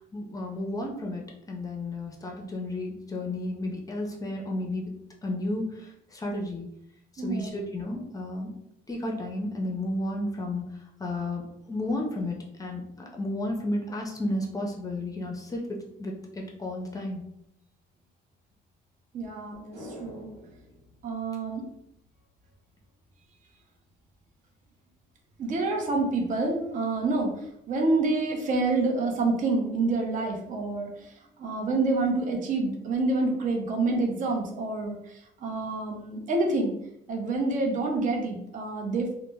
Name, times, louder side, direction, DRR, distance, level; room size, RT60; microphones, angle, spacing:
voice 1, 0.1-4.9 5.2-6.7 7.1-8.5 8.9-10.7 11.0-17.2, left 1 dB, 20° left, 0 dB, 0.5 m, -32 dB
voice 2, 7.2-7.5 19.1-20.3 21.0-21.7 25.4-36.7 37.1-39.1, right 3 dB, 50° right, 1 dB, 0.5 m, -28 dB
sound 1, 19.7-22.2 22.5-22.6, equal, 85° right, 0.9 m, -47 dB
2.0 x 2.0 x 3.2 m, 0.77 s
cardioid pair, 110°, 17 cm